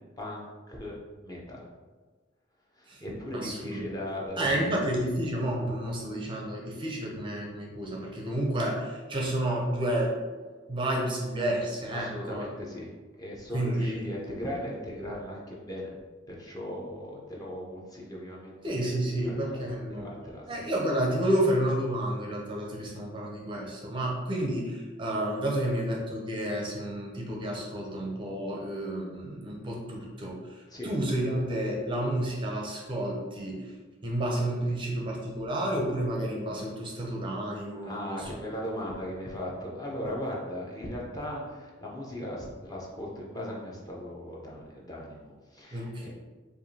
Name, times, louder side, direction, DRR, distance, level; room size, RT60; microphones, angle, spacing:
voice 1, 0.2-0.9 1.2-1.6 2.8-4.8 11.9-12.9 13.2-15.9 16.3-18.8 19.1-20.4 30.7-30.9 37.8-46.1, left 1 dB, 20° left, -3 dB, 0.7 m, -38 dB
voice 2, 3.3-3.8 4.4-10.2 10.7-12.7 13.5-14.1 18.6-20.1 20.5-33.7 34.0-38.3 45.7-46.1, right 1 dB, 25° right, -2 dB, 0.5 m, -30 dB
4.6 x 2.5 x 2.7 m, 1.3 s
head